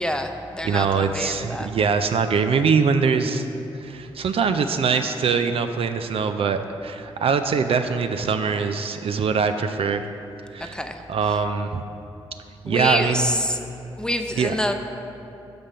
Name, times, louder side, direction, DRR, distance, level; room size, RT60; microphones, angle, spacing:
voice 1, 0.0-1.7 10.6-11.0 12.7-13.6 14.0-14.7, left 1 dB, 5° left, 6 dB, 0.6 m, -26 dB
voice 2, 0.6-3.4 3.7-10.1 10.5-10.8 11.1-11.8 12.6-13.3 14.4-14.6, right 5 dB, 55° right, 8 dB, 0.4 m, -23 dB
6.0 x 5.1 x 5.5 m, 2.8 s
hypercardioid pair, 40°, 11 cm